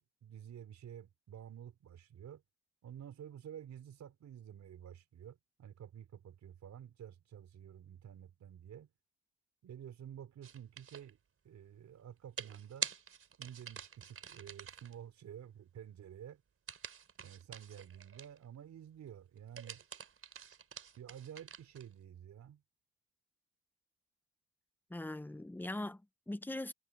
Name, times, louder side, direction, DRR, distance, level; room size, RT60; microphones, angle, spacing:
voice 1, 0.0-2.4 2.8-8.9 9.6-11.2 11.4-12.9 13.4-16.4 17.2-19.8 21.0-22.6, right 9 dB, 65° right, 4.4 m, -51 dB
sound 1, 10.4-11.1 12.4-14.9 16.7-18.4 19.4-21.9, right 6 dB, 50° right, 4.3 m, -46 dB
voice 2, 24.9-26.7, left 1 dB, 5° left, 0.9 m, -41 dB
cardioid pair, 90°, 30 cm